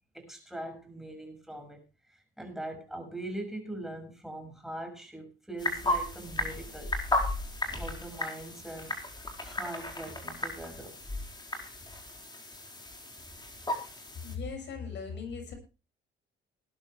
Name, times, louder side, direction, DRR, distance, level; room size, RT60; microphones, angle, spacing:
voice 1, 0.1-6.9 7.4-9.0 9.4-11.0, right 1 dB, ahead, 6.2 m, -42 dB
sound 1, 5.6-14.4, left 2 dB, 20° left, 4.8 m, -35 dB
voice 2, 14.2-15.5, left 5 dB, 65° left, 6.9 m, -38 dB
20.0 x 11.0 x 3.3 m
cardioid pair, 90°, 20 cm